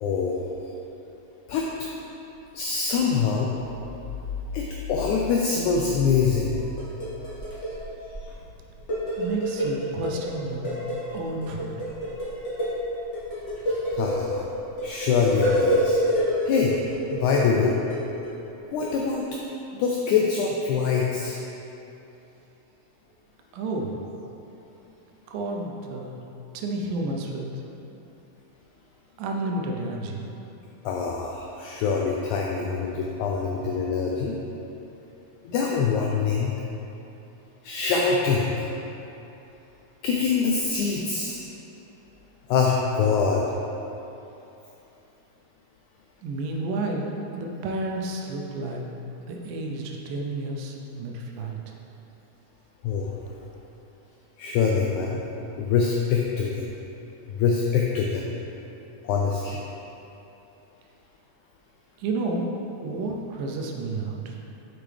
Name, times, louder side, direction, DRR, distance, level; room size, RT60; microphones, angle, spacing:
voice 1, 0.0-0.6 1.5-1.9 2.5-3.5 4.5-6.6 13.9-14.4 14.8-16.0 16.5-16.8 17.1-17.8 18.7-19.3 19.7-21.4 30.9-34.4 35.4-36.5 37.6-38.7 40.0-41.4 42.5-43.5 52.8-53.2 54.4-55.2 55.6-56.7 57.3-58.3 59.0-59.6, left 5 dB, 85° left, -1 dB, 1.7 m, -24 dB
sound 1, 6.5-8.4 8.7-10.3 10.6-18.3 18.8-19.0, equal, 50° left, 0.8 m, -27 dB
voice 2, 9.2-10.8 11.1-11.7 23.5-24.0 25.3-26.2 26.5-27.5 29.2-30.2 46.2-48.8 49.3-51.6 62.0-62.5 62.8-64.4, right 2 dB, 80° right, 1 dB, 2.3 m, -31 dB
6.6 x 5.9 x 3.3 m, 3.0 s
omnidirectional pair, 3.9 m